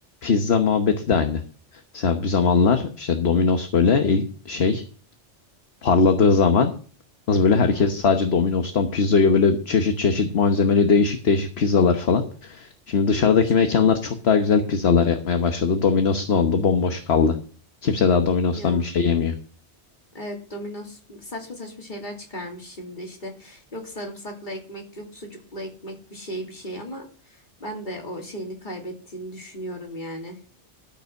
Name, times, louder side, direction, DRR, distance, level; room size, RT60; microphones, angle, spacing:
voice 1, 0.2-1.4 1.9-4.8 5.8-6.7 7.3-17.4 17.8-19.3, left 5 dB, 60° left, 6 dB, 1.3 m, -20 dB
voice 2, 7.5-7.9 13.1-13.3 18.5-18.8 20.1-30.4, equal, 40° left, 1 dB, 2.8 m, -36 dB
13.5 x 5.5 x 6.5 m, 0.40 s
omnidirectional pair, 1.2 m